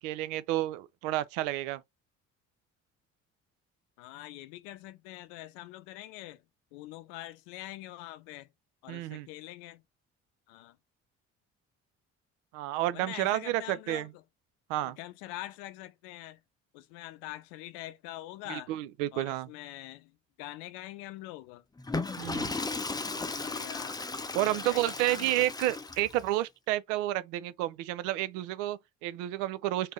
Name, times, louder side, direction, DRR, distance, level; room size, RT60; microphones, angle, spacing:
voice 1, 0.0-1.8 8.9-9.3 12.5-14.1 14.7-15.0 18.5-19.5 22.2-22.6 24.3-29.9, right 15 dB, 75° right, 0.5 m, -31 dB
voice 2, 4.0-6.4 6.7-8.5 8.8-9.8 10.5-10.8 12.9-14.2 14.8-16.4 16.7-18.7 19.1-21.6 23.0-25.4, left 15 dB, 75° left, 0.5 m, -44 dB
Water / Toilet flush, 21.8-26.3, left 3 dB, 10° left, 0.5 m, -36 dB
3.4 x 2.7 x 3.0 m
hypercardioid pair, 50°, 37 cm